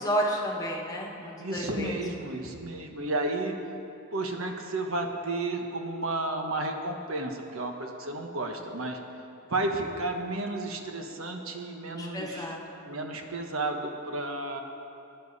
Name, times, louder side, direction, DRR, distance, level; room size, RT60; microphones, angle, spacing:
voice 1, 0.0-2.0 11.8-12.7, equal, 15° left, -1 dB, 1.5 m, -31 dB
voice 2, 1.4-3.6 4.1-9.0 9.5-12.6 12.9-14.6, right 2 dB, 80° right, 4 dB, 1.3 m, -32 dB
17.0 x 10.5 x 4.2 m, 2.7 s
head